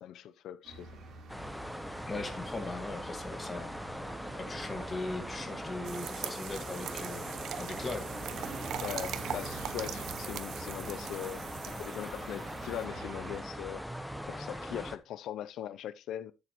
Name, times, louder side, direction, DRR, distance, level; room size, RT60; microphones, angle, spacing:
voice 1, 0.0-1.0 8.8-13.9 14.3-16.3, left 11 dB, 90° left, 0.4 m, -40 dB
sound 1, 0.6-13.4, right 3 dB, 55° right, 3.2 m, -47 dB
sound 2, 1.3-15.0, equal, ahead, 0.7 m, -41 dB
voice 2, 2.1-3.7 4.4-8.1, left 3 dB, 20° left, 1.5 m, -39 dB
sound 3, 5.8-12.8, right 10 dB, 85° right, 0.8 m, -42 dB
11.0 x 7.6 x 2.9 m
cardioid pair, 175°, 0 cm